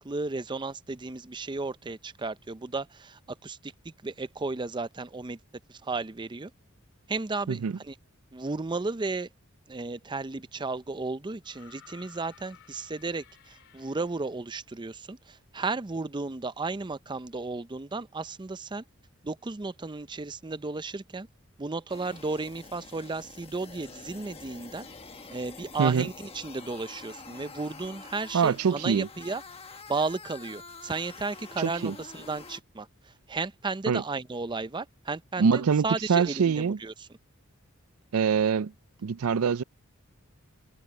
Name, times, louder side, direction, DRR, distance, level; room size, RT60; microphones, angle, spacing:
voice 1, 0.0-5.4 5.7-6.5 7.1-8.0 8.3-9.3 9.7-18.8 19.2-21.3 21.6-24.9 25.3-29.4 29.9-37.1, right 3 dB, 20° right, 0.5 m, -34 dB
sound 1, 11.4-14.5 15.7-15.8, left 10 dB, 65° left, 3.5 m, -55 dB
sound 2, 21.9-32.6, left 4 dB, 25° left, 1.3 m, -47 dB
voice 2, 28.3-29.1 31.6-31.9 33.9-34.0 35.4-36.8 38.1-38.7 39.0-39.6, right 6 dB, 80° right, 0.5 m, -24 dB
head